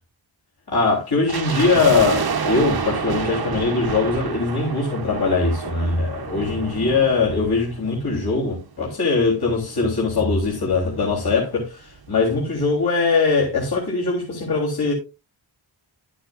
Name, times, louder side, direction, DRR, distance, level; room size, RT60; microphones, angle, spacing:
voice 1, 0.7-14.9, left 4 dB, 50° left, 3.7 m, -21 dB
sound 1, 1.3-8.6 8.8-8.9 9.6-11.4 11.7-11.8 12.0-12.3 12.7-12.8, right 6 dB, 50° right, 1.1 m, -29 dB
12.0 x 10.0 x 2.5 m
wide cardioid pair, 120°, 48 cm